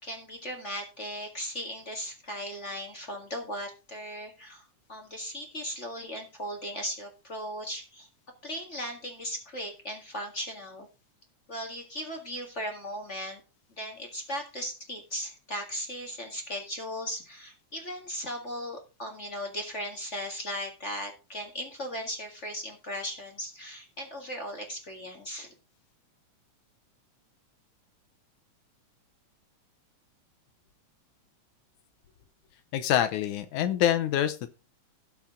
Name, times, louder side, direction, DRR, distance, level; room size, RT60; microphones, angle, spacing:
voice 1, 0.0-4.6 4.9-8.1 8.4-10.9 11.5-13.4 13.8-25.5, equal, 30° left, 3 dB, 1.5 m, -37 dB
voice 2, 32.7-34.5, left 11 dB, 75° left, 10 dB, 2.2 m, -26 dB
17.5 x 5.9 x 3.7 m, 0.31 s
omnidirectional pair, 3.6 m